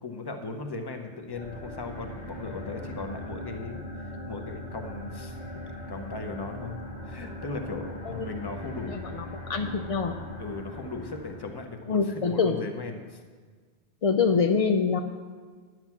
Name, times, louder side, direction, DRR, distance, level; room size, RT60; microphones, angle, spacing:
voice 1, 0.0-3.8 4.3-5.4 5.9-6.8 7.0-9.0 10.4-12.0 12.3-13.2, left 3 dB, 25° left, 5 dB, 0.9 m, -37 dB
sound 1, 1.3-11.7, left 1 dB, 80° left, 2.0 m, -40 dB
voice 2, 8.9-10.2 11.9-12.6 14.0-15.0, left 5 dB, 55° left, 5 dB, 0.4 m, -25 dB
10.5 x 7.9 x 6.0 m, 1.5 s
omnidirectional pair, 1.2 m